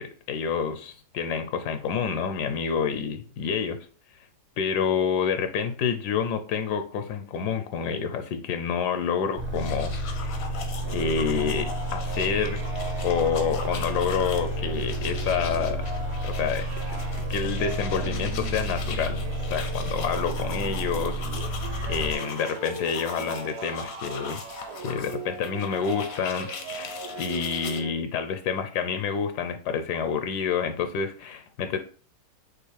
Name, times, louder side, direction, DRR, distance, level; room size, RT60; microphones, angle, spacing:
voice 1, 0.0-3.8 4.6-10.5 10.9-12.6 13.0-15.8 16.2-16.6 17.2-19.2 19.5-24.4 24.8-31.8, left 6 dB, 80° left, 8 dB, 1.2 m, -28 dB
sound 1, 9.4-27.8, left 5 dB, 60° left, 0.7 m, -41 dB
sound 2, 9.4-22.1, equal, 45° right, 0.7 m, -31 dB
sound 3, 10.8-27.9, right 3 dB, 70° right, 1.1 m, -39 dB
6.4 x 2.5 x 3.2 m, 0.40 s
omnidirectional pair, 1.7 m